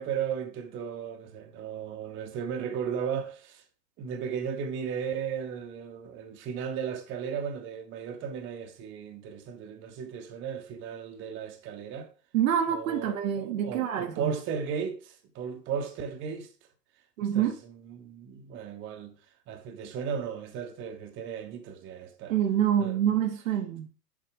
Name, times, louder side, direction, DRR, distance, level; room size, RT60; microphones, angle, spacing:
voice 1, 0.0-3.6 4.0-12.1 12.7-16.5 17.3-17.5 17.9-19.1 19.5-22.3 22.8-23.0, right 7 dB, 25° right, 1.1 m, -35 dB
voice 2, 12.3-14.3 17.2-17.6 22.3-23.9, right 10 dB, 55° right, 1.1 m, -26 dB
7.3 x 4.6 x 4.7 m
figure-of-eight pair, 110°, 48 cm